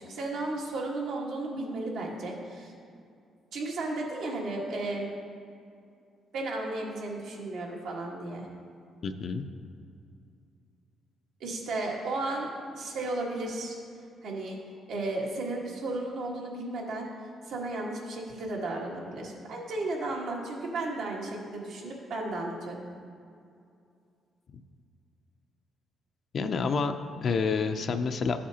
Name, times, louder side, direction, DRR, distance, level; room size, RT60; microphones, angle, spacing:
voice 1, 0.0-2.7 3.5-5.1 6.3-8.5 11.4-12.5 12.7-13.8 14.2-14.6 14.9-17.1 17.5-22.8, right 2 dB, 75° right, -2 dB, 1.5 m, -34 dB
voice 2, 9.0-9.4 26.3-28.4, left 5 dB, 55° left, 7 dB, 0.5 m, -28 dB
12.0 x 7.5 x 2.8 m, 2.4 s
cardioid pair, 90°, 0 cm